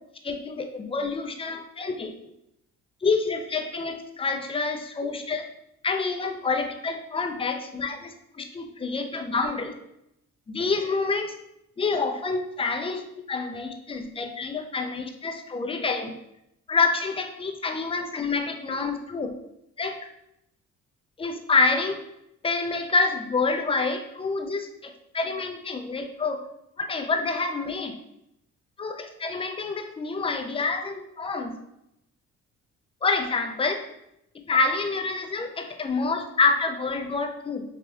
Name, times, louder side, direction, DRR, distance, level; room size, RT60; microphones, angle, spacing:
voice 1, 0.2-2.1 3.0-5.5 5.8-9.7 10.5-11.3 11.8-13.0 13.3-16.1 16.7-19.3 19.8-20.0 21.2-22.0 22.4-26.4 26.8-28.0 28.8-31.6 33.0-33.8 34.5-37.6, left 4 dB, 20° left, 4 dB, 0.4 m, -27 dB
3.2 x 2.7 x 2.2 m, 0.80 s
cardioid pair, 90°, 30 cm